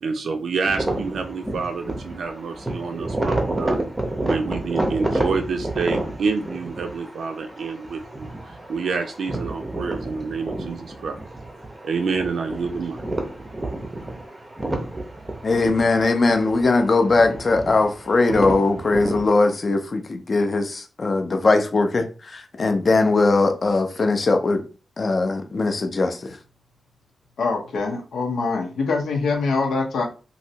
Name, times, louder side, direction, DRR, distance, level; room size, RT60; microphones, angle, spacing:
voice 1, 0.0-3.9 4.3-11.2 11.8-13.0, right 4 dB, 70° right, 0.4 m, -28 dB
sound 1, 0.6-19.3, right 1 dB, 15° right, 0.6 m, -30 dB
voice 2, 15.4-22.1 22.3-24.6 25.0-26.2, left 3 dB, 35° left, 0.5 m, -20 dB
voice 3, 27.4-30.0, left 4 dB, 90° left, 0.8 m, -24 dB
3.1 x 2.6 x 2.8 m
wide cardioid pair, 155°, 0 cm